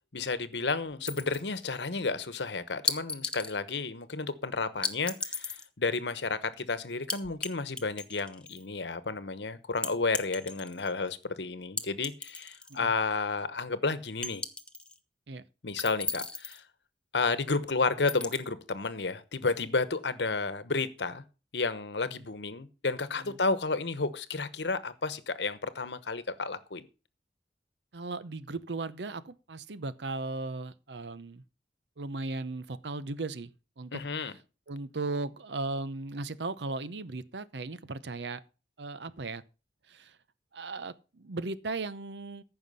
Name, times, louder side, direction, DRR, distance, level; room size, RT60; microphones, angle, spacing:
voice 1, 0.1-14.4 15.6-16.6 17.1-21.2 21.5-26.9 33.9-34.3, left 4 dB, 75° left, 1.1 m, -32 dB
sound 1, 1.1-1.6 2.9-3.6 4.8-5.7 7.1-7.5 7.8-8.6 9.8-10.9 11.8-12.8 13.1-13.2 14.2-15.0 15.8-16.6 18.1-18.4, left 2 dB, 5° left, 1.0 m, -35 dB
voice 2, 27.9-31.4 32.0-33.5 33.8-34.4 34.7-38.4 38.8-39.4 39.9-40.2 40.5-42.4, right 3 dB, 75° right, 0.8 m, -37 dB
14.5 x 5.8 x 5.6 m
head